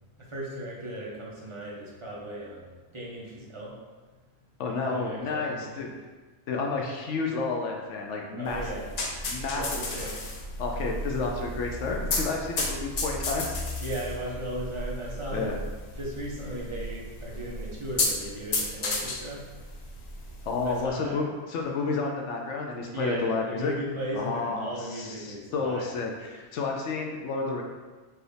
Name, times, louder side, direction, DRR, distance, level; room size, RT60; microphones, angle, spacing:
voice 1, 0.2-3.7 4.8-5.9 8.4-8.9 9.5-10.1 13.8-15.5 15.9-19.4 20.6-21.2 22.9-25.9, right 1 dB, 30° right, -5 dB, 0.7 m, -36 dB
voice 2, 4.6-5.9 6.5-8.6 9.3-9.8 10.6-13.6 15.3-15.6 20.4-23.7 24.1-27.6, left 4 dB, 75° left, 1 dB, 0.9 m, -31 dB
sound 1, 8.5-20.9, left 2 dB, 60° left, 0.4 m, -33 dB
4.7 x 2.6 x 3.3 m, 1.3 s
omnidirectional pair, 1.2 m